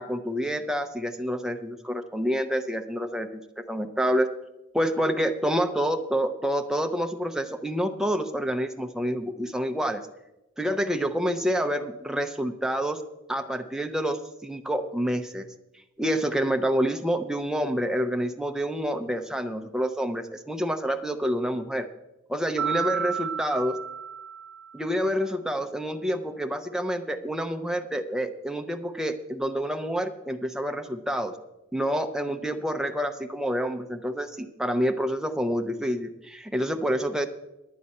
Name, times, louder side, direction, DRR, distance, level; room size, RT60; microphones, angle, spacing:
voice 1, 0.0-4.3 4.7-10.0 10.6-13.0 13.3-15.5 16.0-21.9 22.3-23.8 24.7-31.3 31.7-37.3, equal, 5° right, 6 dB, 0.6 m, -28 dB
Mallet percussion, 22.6-25.0, right 7 dB, 85° right, 0.5 m, -32 dB
10.0 x 9.4 x 5.4 m, 0.95 s
head